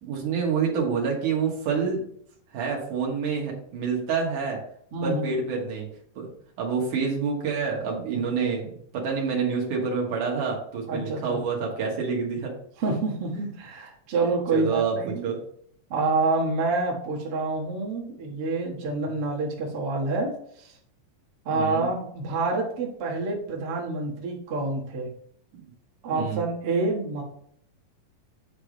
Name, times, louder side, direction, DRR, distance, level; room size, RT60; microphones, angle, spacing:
voice 1, 0.0-2.0 2.5-4.6 5.0-5.9 6.2-6.3 6.6-12.5 14.5-15.4 21.5-21.9 26.1-26.4, right 5 dB, 70° right, -1 dB, 2.8 m, -27 dB
voice 2, 4.9-5.3 10.9-11.4 12.8-15.2 15.9-20.3 20.6-20.8 21.5-25.1 26.0-27.2, right 3 dB, 50° right, -3 dB, 2.0 m, -27 dB
9.1 x 3.4 x 5.1 m, 0.65 s
omnidirectional pair, 3.8 m